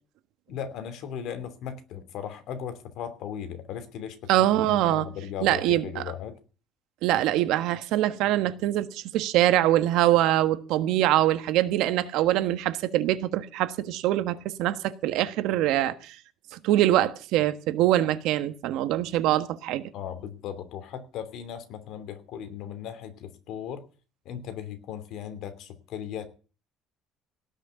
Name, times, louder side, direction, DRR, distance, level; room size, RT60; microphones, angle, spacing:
voice 1, 0.5-6.3 19.9-23.8 24.2-26.3, left 9 dB, 60° left, 2.9 m, -37 dB
voice 2, 4.3-5.1 5.4-6.0 7.0-16.2 16.5-19.8, right 14 dB, 70° right, 1.4 m, -24 dB
18.0 x 6.5 x 9.2 m
cardioid pair, 165°, 0 cm